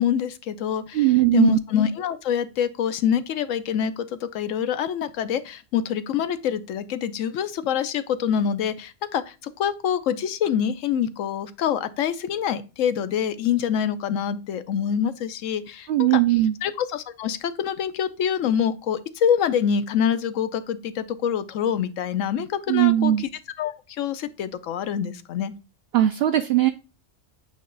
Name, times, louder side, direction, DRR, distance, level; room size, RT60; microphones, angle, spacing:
voice 1, 0.0-16.1 16.6-23.3 23.6-25.5, left 8 dB, 90° left, 1.0 m, -25 dB
voice 2, 0.9-1.6 15.9-16.6 22.7-23.2 25.9-26.7, right 14 dB, 65° right, 0.7 m, -19 dB
8.5 x 3.1 x 3.8 m
omnidirectional pair, 1.3 m